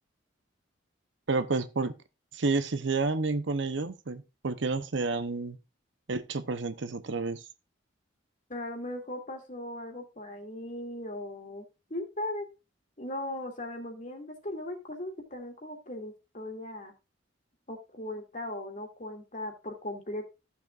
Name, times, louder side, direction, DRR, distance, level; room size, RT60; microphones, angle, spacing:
voice 1, 1.3-1.9 2.3-5.6 6.1-7.4, right 3 dB, 70° right, 0.8 m, -30 dB
voice 2, 8.5-12.5 13.0-16.9 17.7-20.3, left 1 dB, 40° left, 2.5 m, -38 dB
15.0 x 7.1 x 2.5 m
head